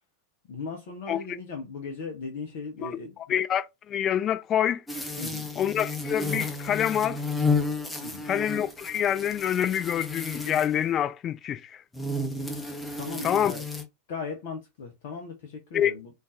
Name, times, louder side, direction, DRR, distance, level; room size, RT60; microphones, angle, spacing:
voice 1, 0.5-3.1 5.2-5.5 8.0-8.3 13.0-13.6 14.1-16.1, left 4 dB, 55° left, 0.7 m, -37 dB
voice 2, 3.3-4.8 5.6-7.2 8.2-11.8 13.2-13.5 15.7-15.9, left 10 dB, 30° left, 0.3 m, -26 dB
sound 1, 4.9-10.8 11.9-13.8, left 3 dB, 10° left, 0.8 m, -32 dB
3.8 x 2.4 x 2.6 m
figure-of-eight pair, 85°, 0 cm